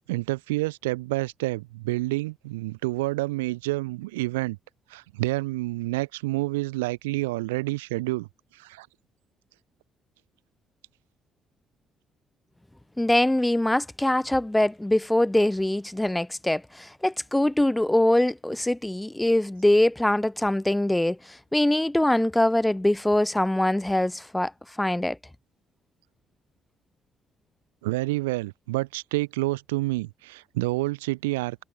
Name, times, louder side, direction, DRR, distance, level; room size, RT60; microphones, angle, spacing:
voice 1, 0.1-4.6 4.9-8.3 8.5-8.9 27.8-31.6, right 20 dB, 75° right, 0.7 m, -28 dB
voice 2, 13.0-24.5 24.8-25.2, left 1 dB, 10° left, 0.8 m, -23 dB
figure-of-eight pair, 45°, 0 cm